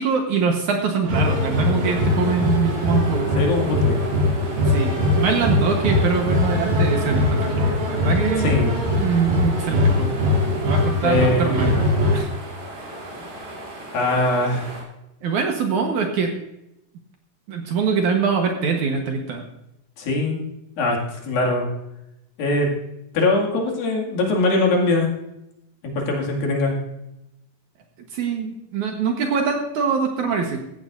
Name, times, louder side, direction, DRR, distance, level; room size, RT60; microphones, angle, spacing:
voice 1, 0.0-3.3 4.7-8.5 8.9-10.1 10.7-11.9 12.1-12.3 15.2-16.4 17.5-19.4 28.1-30.6, right 5 dB, 65° right, 3 dB, 2.3 m, -23 dB
sound 1, 1.0-12.2, left 2 dB, 80° right, 4.8 m, -21 dB
sound 2, 1.1-14.8, right 1 dB, 40° right, 4.0 m, -37 dB
voice 2, 3.4-4.0 8.4-8.8 11.0-11.7 13.9-14.7 20.0-20.4 20.8-21.0 21.2-21.7 22.4-22.7 23.1-25.1 25.8-26.7, left 2 dB, 70° left, 0 dB, 4.0 m, -21 dB
16.0 x 15.0 x 2.6 m, 0.86 s
omnidirectional pair, 4.4 m